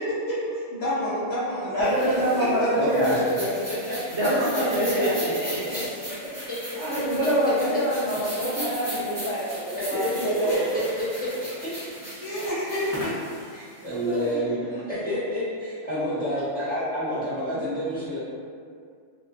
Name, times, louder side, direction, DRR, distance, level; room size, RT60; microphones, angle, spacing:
voice 1, 0.7-2.7 9.6-9.7 10.2-10.6 12.2-13.5 14.0-14.3 16.1-16.4, equal, 55° left, -10 dB, 0.9 m, -29 dB
voice 2, 1.7-3.5 4.1-5.1 5.6-6.1 6.8-10.7, equal, 65° right, -9 dB, 0.9 m, -25 dB
sound 1, 1.8-14.3, equal, 20° right, 0.5 m, -38 dB
voice 3, 2.7-3.3 3.7-4.0 4.9-5.8 9.9-10.1 11.6-11.7 13.5-18.2, equal, 5° left, -14 dB, 0.9 m, -29 dB
2.4 x 2.4 x 2.3 m, 2.2 s
omnidirectional pair, 1.4 m